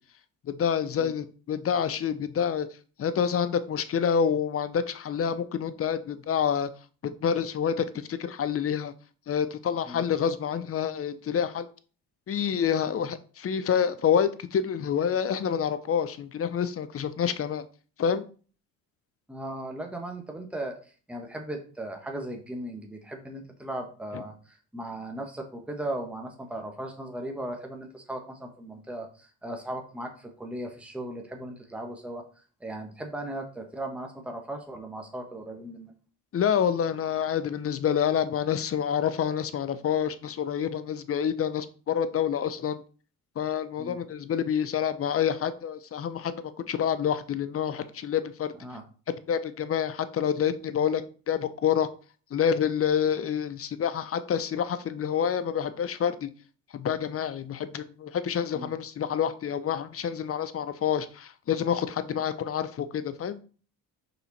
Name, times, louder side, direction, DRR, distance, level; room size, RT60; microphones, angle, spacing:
voice 1, 0.5-2.7 3.0-6.7 7.0-8.9 9.3-11.7 12.3-17.6 18.0-18.2 24.1-24.2 36.3-42.8 43.4-48.5 49.3-51.0 51.3-51.9 52.3-56.3 56.7-63.4, left 8 dB, 40° left, 12 dB, 0.8 m, -27 dB
voice 2, 19.3-20.8 21.1-35.9 43.8-44.0 48.6-48.8 58.5-58.7, right 1 dB, 5° right, 2 dB, 1.3 m, -37 dB
5.3 x 4.4 x 4.1 m, 0.39 s
supercardioid pair, 75°, 36 cm